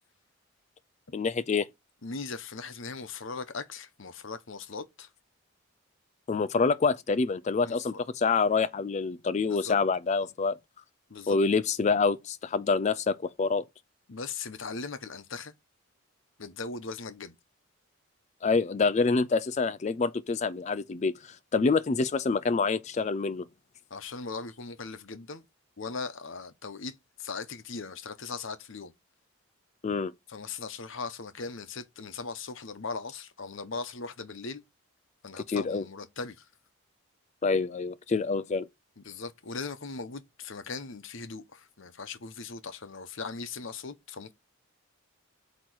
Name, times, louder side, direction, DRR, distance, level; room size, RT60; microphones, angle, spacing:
voice 1, 1.1-1.7 6.3-10.6 11.3-13.6 18.4-23.5 29.8-30.1 35.5-35.9 37.4-38.7, left 4 dB, 30° left, 0.3 m, -26 dB
voice 2, 2.0-5.1 7.6-8.0 9.4-9.8 11.1-11.4 14.1-15.5 16.4-17.3 23.9-25.4 25.8-26.9 27.2-28.9 30.3-34.6 35.2-36.3 39.0-44.3, left 4 dB, 60° left, 0.8 m, -39 dB
8.2 x 3.0 x 6.2 m
head